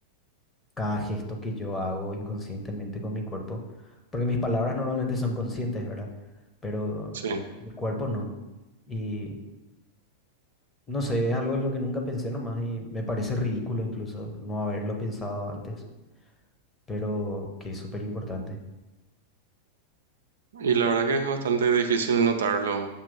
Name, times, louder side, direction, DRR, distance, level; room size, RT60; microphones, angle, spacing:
voice 1, 0.8-3.6 4.1-6.1 6.6-7.2 7.6-8.3 8.9-9.4 10.9-15.8 16.9-18.6, left 1 dB, 15° left, 1 dB, 1.0 m, -30 dB
voice 2, 20.5-22.9, right 6 dB, 65° right, 5 dB, 0.5 m, -24 dB
7.0 x 3.0 x 5.4 m, 1.1 s
figure-of-eight pair, 90°, 0 cm